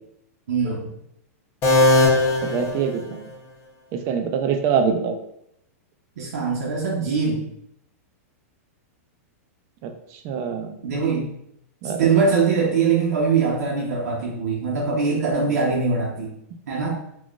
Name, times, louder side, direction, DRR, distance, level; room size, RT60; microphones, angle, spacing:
voice 1, 0.5-0.9 6.2-7.5 10.8-11.3 12.0-16.3 16.7-17.0, right 5 dB, 85° right, -3 dB, 0.7 m, -22 dB
sound 1, 1.6-3.5, left 1 dB, 30° left, 0.7 m, -19 dB
voice 2, 2.4-3.3 3.9-5.2 9.8-9.9 10.2-10.7 11.8-12.1, right 6 dB, 35° right, 5 dB, 0.4 m, -24 dB
3.6 x 2.4 x 2.4 m, 0.76 s
supercardioid pair, 155°, 8 cm